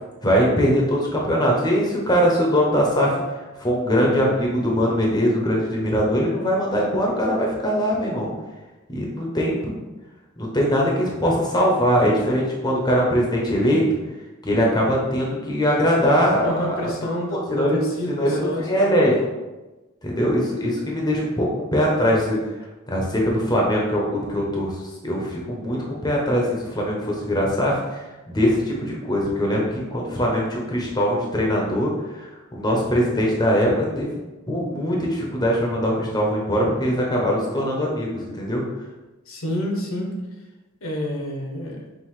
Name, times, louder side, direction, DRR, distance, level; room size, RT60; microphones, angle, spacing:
voice 1, 0.2-3.2 3.6-8.3 8.9-9.8 10.4-13.9 14.4-19.2 20.0-22.4 22.9-24.7 25.0-32.3 32.5-34.1 34.5-38.6, equal, 20° left, -2 dB, 0.6 m, -21 dB
voice 2, 16.4-18.8 39.3-40.2 40.8-41.8, left 1 dB, 70° left, 0 dB, 0.9 m, -28 dB
5.6 x 2.5 x 3.1 m, 1.1 s
head